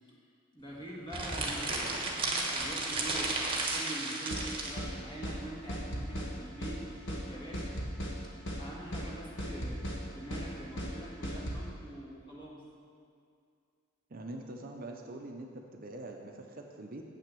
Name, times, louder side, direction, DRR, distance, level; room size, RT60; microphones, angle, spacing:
voice 1, 0.5-7.8 8.5-12.6, right 1 dB, 25° left, -4 dB, 1.6 m, -44 dB
sound 1, 1.1-4.8, right 2 dB, 25° right, 1.1 m, -33 dB
sound 2, 4.3-4.5 4.8-4.9 5.2-5.4 5.7-6.3 6.6-6.8 7.1-7.2 7.5-8.2 8.5-8.6 8.9-9.1 9.4-10.0 10.3-10.5 10.8-10.9 11.2-11.6, equal, 60° left, 1.4 m, -36 dB
voice 2, 14.1-17.0, right 2 dB, 45° right, 2 dB, 0.7 m, -44 dB
7.7 x 6.0 x 7.5 m, 2.3 s
head